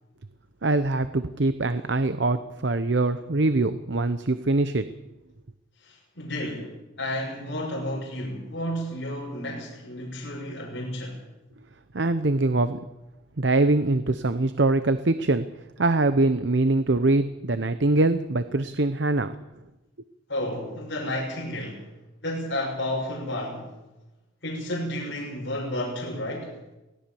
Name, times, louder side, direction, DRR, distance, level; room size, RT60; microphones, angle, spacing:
voice 1, 0.6-4.9 11.9-12.8 13.4-15.5 15.8-19.4, right 2 dB, 65° right, 11 dB, 0.9 m, -23 dB
voice 2, 5.8-11.2 20.3-21.9 22.2-23.7 24.4-26.6, left 1 dB, 60° left, -4 dB, 6.1 m, -32 dB
23.5 x 17.0 x 7.1 m, 1.0 s
head